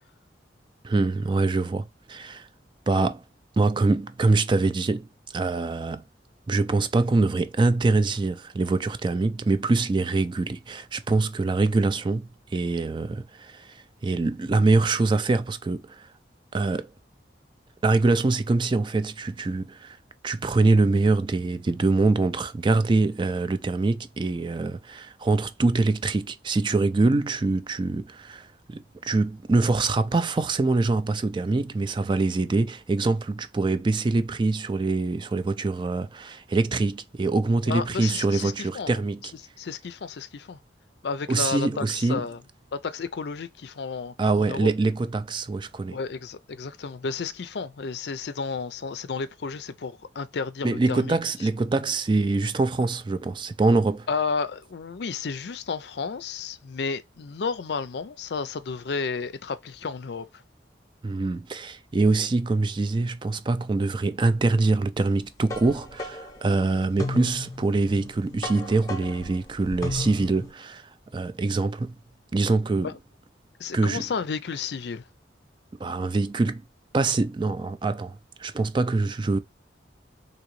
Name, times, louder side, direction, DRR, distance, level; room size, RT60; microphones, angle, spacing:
voice 1, 0.8-2.5 2.9-3.2 3.6-5.1 5.3-6.0 6.5-16.1 16.5-16.9 17.8-20.0 20.2-39.3 41.3-42.3 44.2-46.0 50.6-54.1 61.0-72.0 72.3-72.9 73.7-74.0 75.8-76.6 76.9-79.4, right 3 dB, 25° right, 0.3 m, -24 dB
voice 2, 37.7-38.9 39.6-40.6 41.0-42.4 42.8-44.7 45.9-51.2 54.1-60.3 72.8-72.9 73.6-75.0, left 5 dB, 65° left, 0.5 m, -32 dB
sound 1, 65.1-70.5, left 2 dB, 20° left, 0.8 m, -35 dB
3.9 x 2.8 x 3.0 m
head